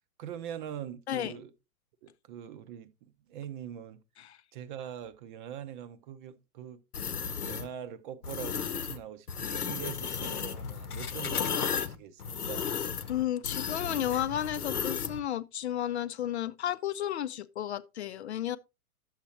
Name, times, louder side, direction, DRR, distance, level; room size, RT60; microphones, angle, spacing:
voice 1, 0.2-1.5 2.0-4.0 4.5-6.8 7.4-12.7, right 9 dB, 35° right, 0.7 m, -43 dB
sound 1, 6.9-7.7 8.2-9.0 9.3-15.2, left 7 dB, 80° left, 0.9 m, -34 dB
voice 2, 13.1-18.6, left 11 dB, 50° left, 0.5 m, -32 dB
11.5 x 7.4 x 2.9 m
figure-of-eight pair, 110°, 45 cm